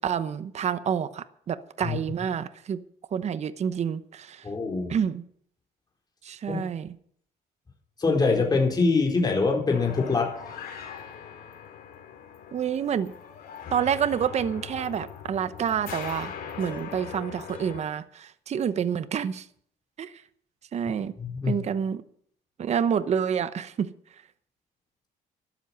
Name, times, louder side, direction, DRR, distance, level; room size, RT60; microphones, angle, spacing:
voice 1, 0.0-2.8 3.1-4.4 4.9-5.2 6.2-7.0 12.5-13.1 13.7-19.5 20.0-20.1 20.7-21.1 21.5-22.0 22.6-23.9, right 8 dB, 40° right, 0.9 m, -28 dB
voice 2, 4.4-5.0 6.5-6.6 8.0-10.6 21.2-21.6, left 4 dB, 25° left, 4.2 m, -24 dB
sound 1, 9.7-17.8, left 7 dB, 60° left, 3.8 m, -41 dB
13.0 x 12.0 x 5.9 m
cardioid pair, 110°, 17 cm